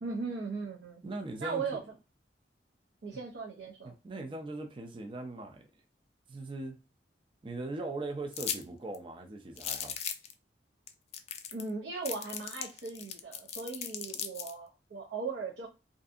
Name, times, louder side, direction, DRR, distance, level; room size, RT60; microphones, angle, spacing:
voice 1, 0.0-1.0 1.4-1.8 3.0-4.3 11.5-15.7, right 4 dB, 85° right, 0.5 m, -38 dB
voice 2, 1.0-1.8 3.8-5.7 6.3-6.8 7.4-10.0, right 2 dB, 30° right, 0.4 m, -40 dB
sound 1, 8.3-8.6 8.9-9.0 9.6-10.3 10.9-11.0 11.1-11.7 12.0-14.5, left 9 dB, 40° left, 0.3 m, -37 dB
2.6 x 2.5 x 2.4 m
head